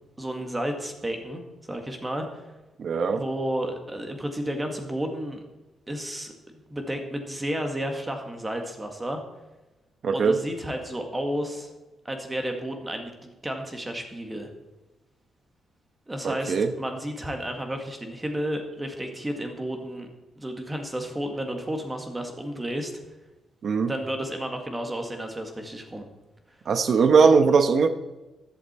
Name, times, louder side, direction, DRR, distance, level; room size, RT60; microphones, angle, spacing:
voice 1, 0.2-1.4 1.7-2.4 3.1-5.4 5.9-9.2 10.1-11.7 12.1-14.5 16.1-20.1 20.4-22.9 23.9-26.0 27.3-27.5, right 1 dB, 10° right, 4 dB, 1.9 m, -32 dB
voice 2, 2.8-3.2 10.0-10.4 16.2-16.7 23.6-23.9 26.7-27.9, right 5 dB, 45° right, 10 dB, 1.1 m, -20 dB
15.0 x 11.5 x 4.4 m, 1.1 s
cardioid pair, 155°, 0 cm